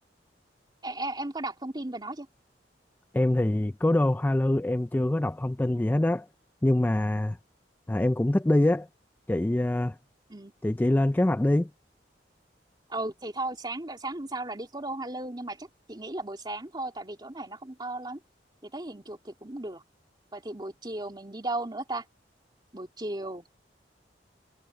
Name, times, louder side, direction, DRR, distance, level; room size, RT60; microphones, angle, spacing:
voice 1, 0.8-2.3 10.3-10.5 12.9-18.2 18.6-19.8 20.3-22.0 22.7-23.5, right 2 dB, 25° right, 2.7 m, -35 dB
voice 2, 3.1-6.3 6.6-7.4 7.9-8.9 9.3-10.0 10.6-11.7, left 1 dB, 10° left, 0.3 m, -24 dB
head